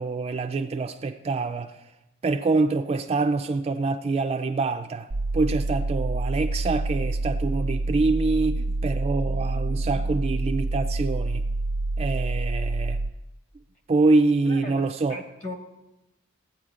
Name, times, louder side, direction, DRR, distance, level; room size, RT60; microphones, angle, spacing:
voice 1, 0.0-1.8 2.2-5.1 5.3-11.4 12.0-13.0 13.9-15.2, right 3 dB, 30° right, 0.3 m, -25 dB
sound 1, 5.1-13.1, right 2 dB, 75° right, 0.6 m, -27 dB
voice 2, 14.5-15.5, left 2 dB, 35° left, 1.4 m, -38 dB
15.5 x 8.6 x 2.5 m
head